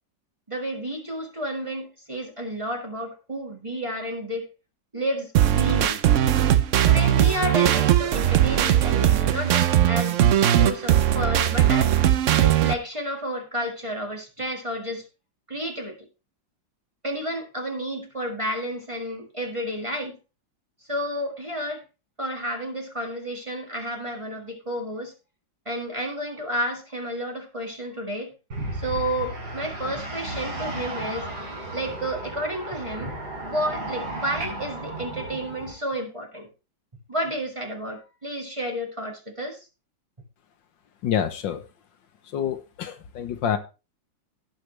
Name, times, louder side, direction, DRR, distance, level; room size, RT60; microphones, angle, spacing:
voice 1, 0.5-4.5 4.9-6.0 6.8-10.2 10.5-11.9 12.4-15.0 15.5-16.0 17.0-20.2 20.9-21.8 22.2-25.1 25.6-28.3 28.7-31.3 31.7-33.1 33.4-36.5 37.1-39.6, equal, 15° right, 1.7 m, -31 dB
sound 1, 5.3-12.7, right 11 dB, 90° right, 0.6 m, -19 dB
sound 2, 28.5-35.7, right 1 dB, 55° right, 3.7 m, -34 dB
voice 2, 41.0-41.6 42.3-43.6, left 9 dB, 75° left, 1.6 m, -27 dB
17.0 x 5.8 x 3.2 m
omnidirectional pair, 2.1 m